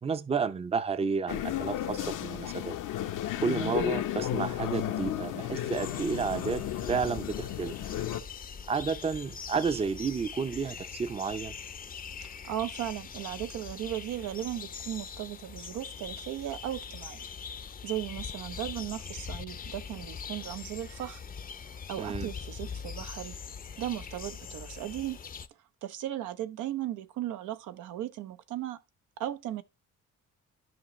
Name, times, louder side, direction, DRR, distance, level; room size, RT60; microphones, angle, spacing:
voice 1, 0.0-2.8 3.4-6.6 6.9-7.8 8.7-11.5 22.0-22.3, right 5 dB, 20° right, 0.5 m, -31 dB
sound 1, 1.3-8.2, left 12 dB, 85° left, 0.8 m, -33 dB
sound 2, 5.7-25.5, left 6 dB, 30° left, 0.5 m, -42 dB
voice 2, 12.4-17.2 17.5-21.2 21.9-23.3 23.8-25.2 25.8-28.8 29.2-29.6, right 12 dB, 85° right, 0.7 m, -36 dB
12.5 x 5.0 x 3.1 m
cardioid pair, 90°, 30 cm